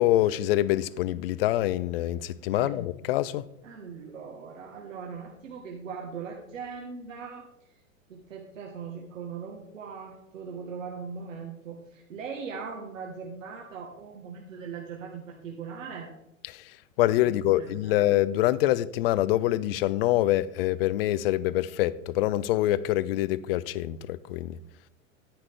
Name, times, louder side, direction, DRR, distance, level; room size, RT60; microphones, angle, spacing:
voice 1, 0.0-3.4 16.5-16.6 17.0-24.6, left 15 dB, 45° left, 0.6 m, -25 dB
voice 2, 3.6-7.4 8.1-16.1 17.2-18.0, right 6 dB, 70° right, 1.5 m, -40 dB
10.0 x 9.6 x 3.4 m
figure-of-eight pair, 95°, 40 cm